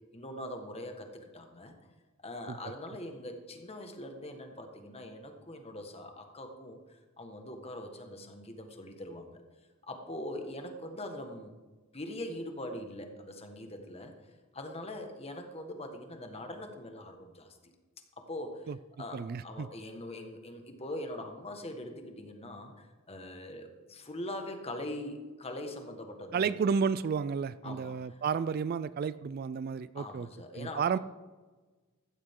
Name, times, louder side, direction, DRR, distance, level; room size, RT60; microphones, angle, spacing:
voice 1, 0.1-1.7 2.2-9.4 9.9-11.5 11.9-14.1 14.5-17.7 18.2-18.7 19.0-26.6 27.6-28.2 29.9-31.0, left 1 dB, 30° left, 5 dB, 1.6 m, -42 dB
voice 2, 19.1-19.7 26.3-30.3 30.5-31.0, right 6 dB, 45° right, 16 dB, 0.3 m, -31 dB
15.0 x 12.5 x 3.8 m, 1.3 s
head